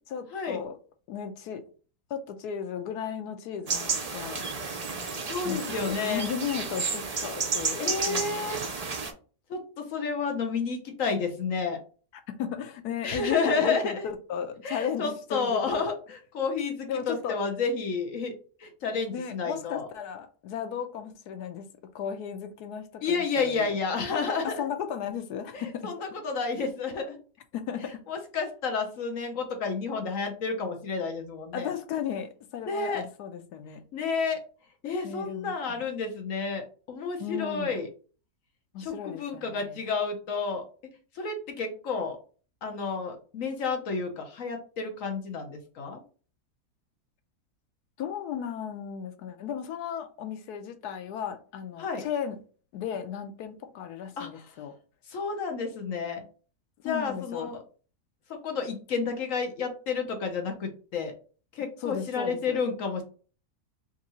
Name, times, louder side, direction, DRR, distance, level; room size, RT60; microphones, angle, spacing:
voice 1, 0.1-0.8 1.1-1.6 2.1-4.4 5.4-8.6 12.3-15.6 16.9-17.4 19.1-21.7 21.9-23.8 24.4-25.9 27.5-28.0 31.5-33.8 35.0-35.9 37.2-37.8 38.7-39.8 48.0-52.4 52.7-54.7 56.8-57.5 61.8-62.6, left 8 dB, 80° left, 7 dB, 1.2 m, -35 dB
sound 1, 3.7-9.1, right 4 dB, 85° right, 0.3 m, -32 dB
voice 2, 5.3-6.3 7.8-8.6 9.5-11.8 13.0-14.1 14.6-18.3 18.6-19.9 23.0-24.7 25.5-27.2 27.8-31.7 32.7-33.0 33.9-34.4 34.8-37.9 38.8-40.6 41.1-42.2 42.6-46.0 51.8-52.0 54.2-54.3 55.1-56.2 56.8-57.6 58.3-61.1 61.5-63.0, left 4 dB, 60° left, 4 dB, 1.1 m, -30 dB
3.6 x 2.6 x 4.1 m, 0.39 s
omnidirectional pair, 1.7 m